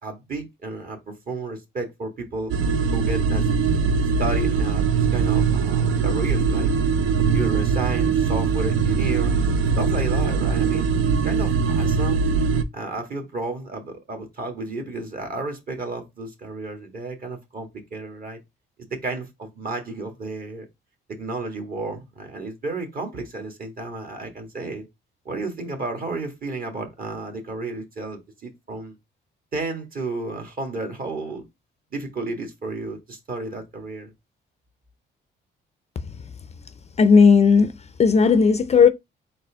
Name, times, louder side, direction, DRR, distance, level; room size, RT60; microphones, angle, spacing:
voice 1, 0.0-2.5 2.9-3.9 4.2-6.7 7.3-9.3 9.8-12.3 12.7-18.4 18.9-20.6 21.1-24.9 25.2-29.0 29.5-31.4 31.9-34.1, right 3 dB, 45° right, 1.5 m, -32 dB
sound 1, 2.5-12.6, right 5 dB, 85° right, 0.5 m, -21 dB
voice 2, 37.0-37.7 38.0-38.9, left 5 dB, 35° left, 0.4 m, -14 dB
4.2 x 2.8 x 3.4 m
cardioid pair, 90°, 20 cm